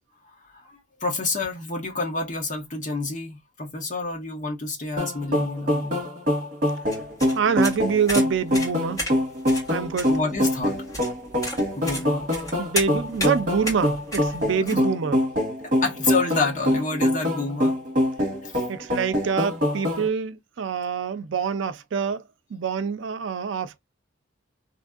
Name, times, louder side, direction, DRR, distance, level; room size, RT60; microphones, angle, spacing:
voice 1, 0.3-6.0 10.1-10.8 11.8-12.3 14.7-14.8 15.8-17.8 18.4-18.6, left 3 dB, 40° left, 1.0 m, -29 dB
sound 1, 5.0-20.1, left 1 dB, 45° right, 1.3 m, -24 dB
sound 2, 6.9-14.8, left 1 dB, 20° left, 1.5 m, -33 dB
voice 2, 7.4-9.0 9.7-10.1 12.6-15.2 18.7-22.2 22.5-23.8, right 6 dB, 80° right, 0.4 m, -26 dB
3.1 x 2.6 x 2.4 m
head